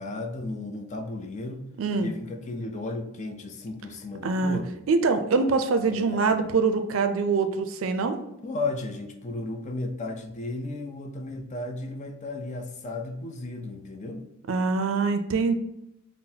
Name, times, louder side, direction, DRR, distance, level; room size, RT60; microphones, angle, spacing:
voice 1, 0.0-1.7 2.0-4.8 5.9-6.4 8.4-14.2, left 2 dB, 35° left, 5 dB, 0.4 m, -34 dB
voice 2, 1.8-2.1 4.2-4.6 4.9-8.2 14.5-15.5, right 4 dB, 70° right, 8 dB, 0.4 m, -24 dB
5.6 x 2.0 x 2.7 m, 0.85 s
head